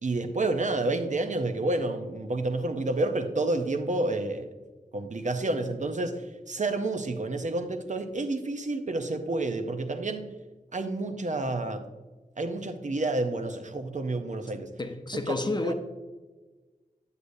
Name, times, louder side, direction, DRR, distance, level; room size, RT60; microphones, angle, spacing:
voice 1, 0.0-4.5 4.9-10.3 10.7-11.8 12.4-14.7 15.3-15.4 15.6-15.7, right 2 dB, 55° right, 7 dB, 0.6 m, -29 dB
voice 2, 14.8-15.7, left 2 dB, 30° left, 6 dB, 0.6 m, -30 dB
8.2 x 8.1 x 2.6 m, 1.3 s
wide cardioid pair, 75°, 15 cm